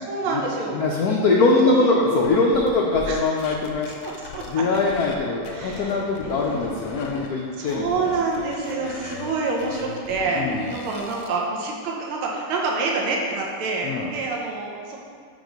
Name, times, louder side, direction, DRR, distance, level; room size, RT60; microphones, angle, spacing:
voice 1, 0.1-0.8 1.3-1.9 3.1-3.2 4.0-4.4 4.7-4.8 5.5-6.8 7.6-10.5 10.7-15.0, right 3 dB, 90° right, -2 dB, 1.6 m, -27 dB
voice 2, 0.7-3.9 4.5-8.1 10.4-10.7 13.8-14.1, left 3 dB, 90° left, -2 dB, 0.8 m, -22 dB
sound 1, 2.2-5.2 5.4-7.3 7.6-11.4, left 4 dB, 70° left, 1.0 m, -36 dB
7.3 x 3.0 x 5.1 m, 2.2 s
omnidirectional pair, 2.3 m